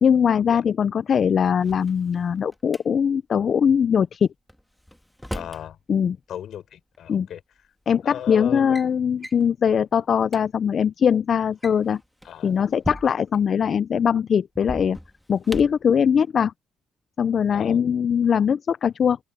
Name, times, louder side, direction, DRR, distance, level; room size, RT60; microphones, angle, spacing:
voice 1, 0.0-4.3 5.9-6.2 7.1-7.3 7.9-12.0 12.4-15.0 15.3-16.5 17.2-19.2, left 7 dB, 50° left, 0.5 m, -21 dB
Drawer open or close, 1.5-2.8 4.5-5.7 6.9-7.0 7.9-8.1 8.4-8.9 9.2-9.5 10.0-10.1 10.2-10.4 11.4-13.4 14.5-15.9, equal, 5° left, 1.5 m, -37 dB
voice 2, 5.3-5.8 6.3-7.4 8.0-8.8 12.2-12.5 17.5-17.8, left 10 dB, 70° left, 6.9 m, -36 dB
open air
cardioid pair, 90°, 0 cm